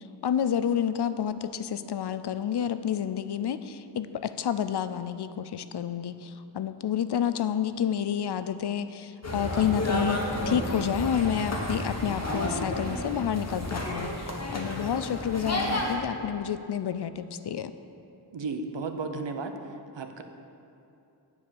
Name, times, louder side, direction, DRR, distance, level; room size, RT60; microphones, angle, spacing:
voice 1, 0.2-14.1 14.5-17.7, left 9 dB, 65° left, 12 dB, 0.5 m, -29 dB
sound 1, 9.2-15.9, left 1 dB, 35° left, 1.3 m, -31 dB
voice 2, 18.3-19.5 19.9-20.2, right 4 dB, 85° right, 6 dB, 0.8 m, -33 dB
9.8 x 4.8 x 7.0 m, 2.8 s
wide cardioid pair, 60°, 43 cm